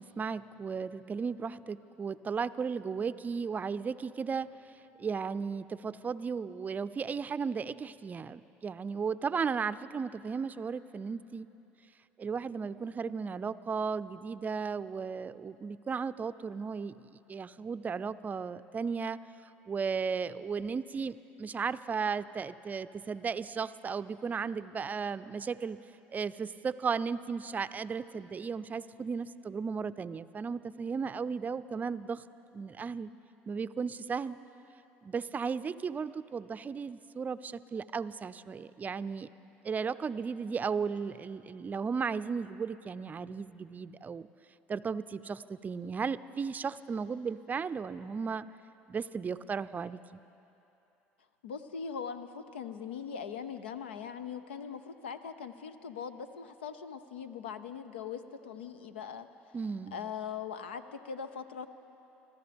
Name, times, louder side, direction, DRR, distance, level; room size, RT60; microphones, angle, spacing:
voice 1, 0.0-4.5 5.0-11.5 12.2-19.2 19.7-25.8 26.1-32.2 32.5-33.1 33.5-34.4 35.0-39.3 39.6-44.3 44.7-48.5 48.9-50.2 59.5-60.0, right 5 dB, 30° right, 14 dB, 0.4 m, -35 dB
voice 2, 51.4-59.3 59.9-61.7, left 7 dB, 90° left, 11 dB, 0.6 m, -41 dB
25.5 x 14.0 x 3.5 m, 2.9 s
hypercardioid pair, 70°, 6 cm